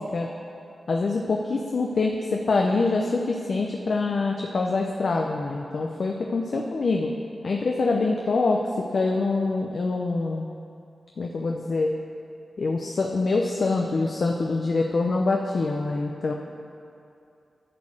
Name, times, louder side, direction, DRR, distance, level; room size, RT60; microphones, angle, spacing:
voice 1, 0.9-7.1 7.4-8.6 8.9-10.5 11.2-11.9 12.6-16.3, left 3 dB, 60° left, 1 dB, 0.6 m, -25 dB
11.0 x 4.1 x 7.6 m, 2.6 s
wide cardioid pair, 90°, 0 cm